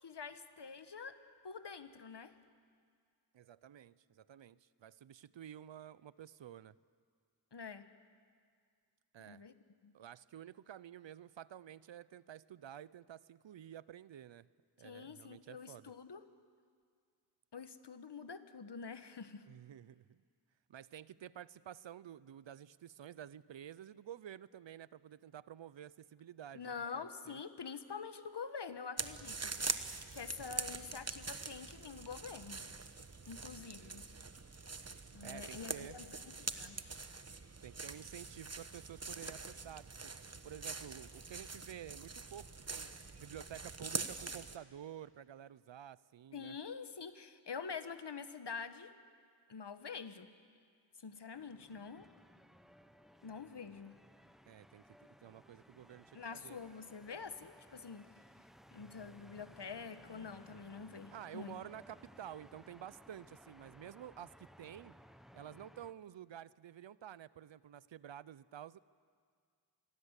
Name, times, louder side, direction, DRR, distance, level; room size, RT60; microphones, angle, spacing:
voice 1, 0.0-1.2 1.4-2.3 7.5-7.9 9.2-9.5 9.8-9.9 14.8-16.2 17.5-19.5 26.5-29.5 29.9-32.7 33.3-34.1 35.1-37.0 46.3-48.9 49.5-50.3 51.0-52.1 53.2-54.0 56.1-58.1 58.7-61.6, left 5 dB, 70° left, 10 dB, 1.4 m, -46 dB
voice 2, 3.3-6.7 9.1-9.4 9.9-14.5 14.8-15.9 19.5-20.2 20.7-26.8 27.2-27.4 29.1-29.3 33.2-33.4 33.8-34.1 35.2-36.0 37.6-40.1 40.4-42.9 43.2-46.6 54.5-54.8 55.2-56.6 61.1-64.9 65.3-68.8, right 10 dB, 90° right, 19 dB, 0.6 m, -51 dB
sound 1, 29.0-44.6, right 4 dB, 35° right, 1.2 m, -44 dB
sound 2, 51.3-65.9, equal, ahead, 1.1 m, -61 dB
26.5 x 21.0 x 8.2 m, 2.1 s
cardioid pair, 45°, 44 cm